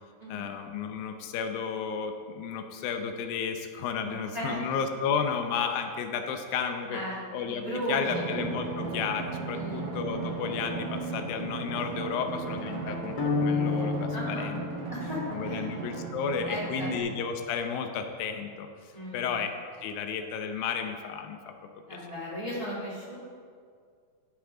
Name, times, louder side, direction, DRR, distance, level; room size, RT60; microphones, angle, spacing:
voice 1, 0.3-7.0 7.3-14.6 15.3-18.7 19.1-19.5 19.8-21.5 21.9-22.0, left 6 dB, 85° left, 6 dB, 2.5 m, -32 dB
voice 2, 4.0-4.7 6.9-7.2 7.5-8.3 9.5-10.0 12.9-13.0 14.1-14.5 14.9-15.7 16.4-16.9 18.9-19.3 21.9-23.2, equal, 10° right, -7 dB, 2.6 m, -36 dB
Drum, 8.1-17.0, right 4 dB, 90° right, 3.2 m, -36 dB
sound 1, 13.2-15.5, left 4 dB, 45° left, 1.6 m, -30 dB
14.5 x 9.3 x 3.8 m, 2.1 s
omnidirectional pair, 4.1 m